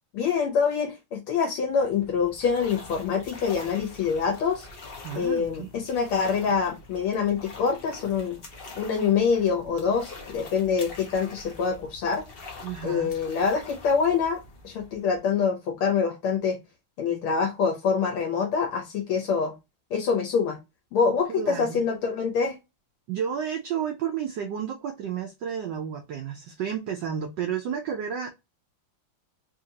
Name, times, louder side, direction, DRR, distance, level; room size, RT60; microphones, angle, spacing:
voice 1, 0.1-4.7 5.1-8.4 8.8-12.2 12.8-14.4 14.6-16.6 17.0-19.5 19.9-20.6 20.9-22.6, left 6 dB, 75° left, 1.6 m, -25 dB
sound 1, 1.7-15.4, left 3 dB, 60° left, 0.6 m, -45 dB
voice 2, 5.0-5.7 12.6-13.1 21.3-21.8 23.1-28.3, right 8 dB, 75° right, 1.0 m, -31 dB
4.0 x 2.8 x 2.7 m
omnidirectional pair, 2.4 m